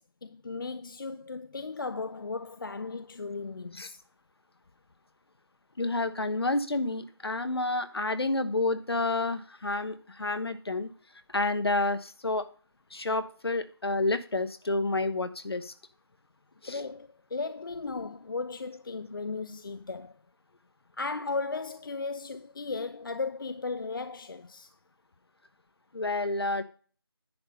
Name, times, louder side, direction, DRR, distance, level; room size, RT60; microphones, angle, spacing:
voice 1, 0.0-4.0 16.6-20.1 20.9-24.7, left 4 dB, 55° left, 0.4 m, -36 dB
voice 2, 5.8-10.9 11.3-12.5 12.9-15.7 16.6-16.8 25.9-26.6, left 2 dB, 75° left, 1.1 m, -29 dB
10.0 x 3.6 x 6.6 m
figure-of-eight pair, 170°, 13 cm